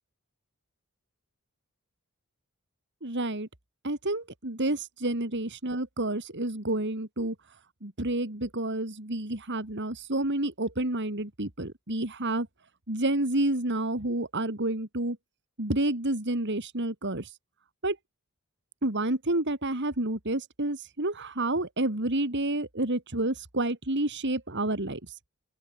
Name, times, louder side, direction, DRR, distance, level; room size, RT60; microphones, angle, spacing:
voice 1, 3.0-3.5 3.8-7.3 7.8-12.5 12.9-15.2 15.6-17.3 17.8-18.0 18.8-25.0, right 1 dB, 50° right, 3.2 m, -29 dB
open air
head